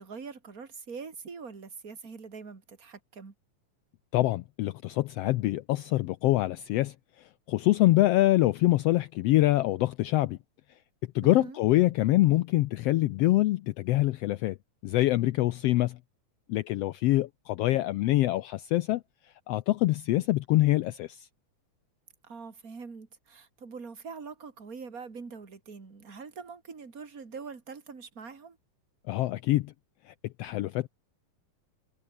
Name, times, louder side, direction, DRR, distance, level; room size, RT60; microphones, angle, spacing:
voice 1, 0.0-3.3 11.2-11.6 22.2-28.6, right 5 dB, 30° right, 3.2 m, -43 dB
voice 2, 4.1-6.9 7.5-10.4 11.1-14.5 14.8-16.0 16.5-19.0 19.5-21.3 29.1-29.7 30.4-30.9, left 17 dB, 80° left, 1.4 m, -25 dB
omnidirectional pair, 3.4 m